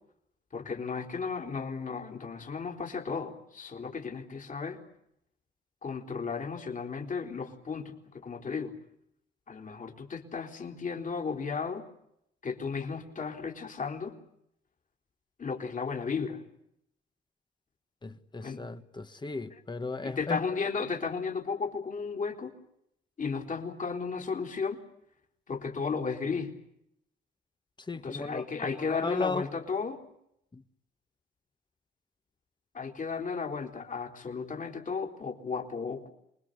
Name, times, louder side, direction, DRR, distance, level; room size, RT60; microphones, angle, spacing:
voice 1, 0.5-4.8 5.8-8.7 9.5-11.9 12.4-14.2 15.4-16.4 18.4-18.6 20.0-22.6 23.2-24.8 25.5-26.5 27.9-30.0 32.7-36.1, left 5 dB, 40° left, 4.1 m, -34 dB
voice 2, 18.0-20.4 27.8-29.4 30.5-30.6, left 3 dB, 20° left, 1.7 m, -35 dB
27.5 x 20.5 x 8.2 m
cardioid pair, 90°, 20 cm